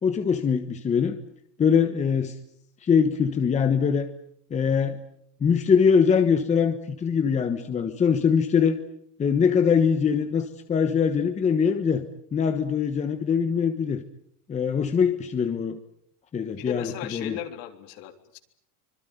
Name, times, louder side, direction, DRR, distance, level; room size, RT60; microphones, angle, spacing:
voice 1, 0.0-1.2 1.6-2.4 2.8-4.1 4.5-5.0 5.4-8.8 9.2-12.0 12.3-14.0 14.5-15.8 16.3-17.4, left 6 dB, 15° left, 8 dB, 1.3 m, -22 dB
voice 2, 16.6-18.4, left 10 dB, 50° left, 7 dB, 3.5 m, -36 dB
25.5 x 22.5 x 9.4 m, 0.70 s
supercardioid pair, 160°, 45 cm